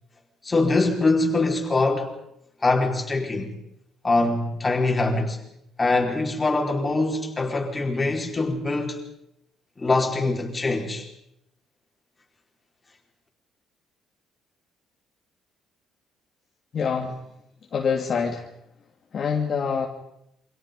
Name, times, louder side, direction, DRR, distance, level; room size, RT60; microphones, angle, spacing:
voice 1, 0.4-2.1 2.6-3.5 4.0-5.4 5.8-9.0 9.8-11.1, left 2 dB, 15° left, 4.7 m, -23 dB
voice 2, 16.7-17.2 17.7-18.5 19.1-19.9, left 6 dB, 40° left, 2.5 m, -25 dB
29.0 x 26.0 x 5.4 m
cardioid pair, 160°, 0 cm